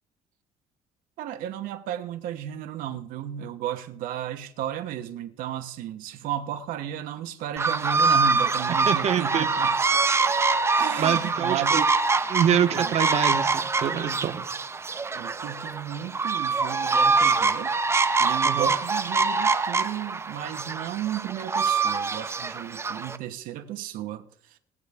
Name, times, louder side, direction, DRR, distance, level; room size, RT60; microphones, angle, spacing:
voice 1, 1.2-9.8 10.7-11.9 12.8-12.9 15.1-17.7 18.2-24.6, right 11 dB, 80° right, 1.1 m, -34 dB
sound 1, 7.6-23.2, right 4 dB, 20° right, 0.6 m, -24 dB
voice 2, 8.9-9.5 11.0-11.8 12.3-14.4 18.4-18.7, right 9 dB, 50° right, 1.0 m, -25 dB
20.5 x 7.8 x 3.5 m
cardioid pair, 130°, 14 cm